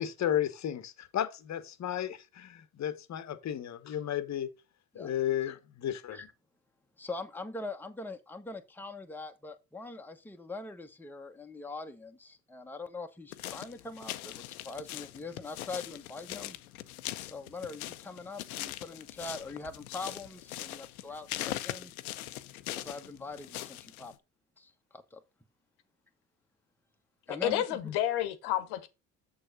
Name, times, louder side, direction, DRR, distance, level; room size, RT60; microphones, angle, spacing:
voice 1, 0.0-4.5 4.9-6.2, left 10 dB, 40° left, 1.1 m, -33 dB
voice 2, 7.0-16.6 17.2-21.9 22.7-24.1 24.6-25.2 27.3-27.9, left 3 dB, 5° left, 1.1 m, -42 dB
sound 1, 13.3-24.1, left 14 dB, 80° left, 0.7 m, -41 dB
voice 3, 27.3-28.9, left 12 dB, 65° left, 1.1 m, -30 dB
7.4 x 6.6 x 3.9 m
hypercardioid pair, 60°, 43 cm